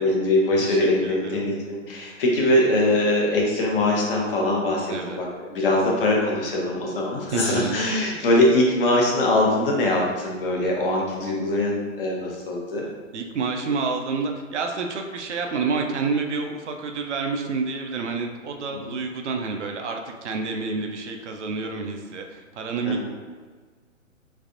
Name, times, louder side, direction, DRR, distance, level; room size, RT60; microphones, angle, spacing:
voice 1, 0.0-12.9 18.7-19.0 22.9-23.1, left 1 dB, 45° left, -2 dB, 0.8 m, -22 dB
voice 2, 0.6-1.4 4.9-5.2 7.3-7.8 13.1-23.1, right 4 dB, 65° right, 3 dB, 0.5 m, -29 dB
Gong, 7.3-9.9, left 3 dB, 80° left, 1.0 m, -37 dB
3.3 x 3.2 x 2.5 m, 1.4 s
hypercardioid pair, 155°, 39 cm